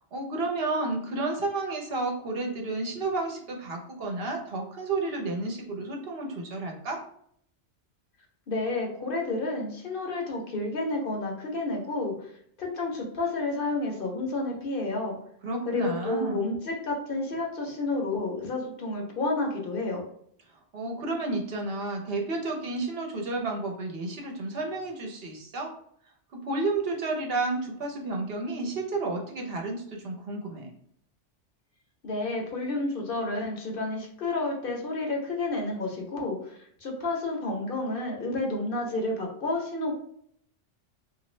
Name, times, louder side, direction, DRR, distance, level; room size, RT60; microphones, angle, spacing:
voice 1, 0.1-7.0 15.4-16.5 20.7-25.7 26.3-30.7, right 2 dB, 60° right, 1 dB, 0.8 m, -31 dB
voice 2, 8.5-12.1 12.6-15.1 15.7-20.0 32.0-39.9, left 2 dB, 55° left, 0 dB, 0.8 m, -30 dB
3.0 x 2.5 x 3.1 m, 0.66 s
omnidirectional pair, 1.2 m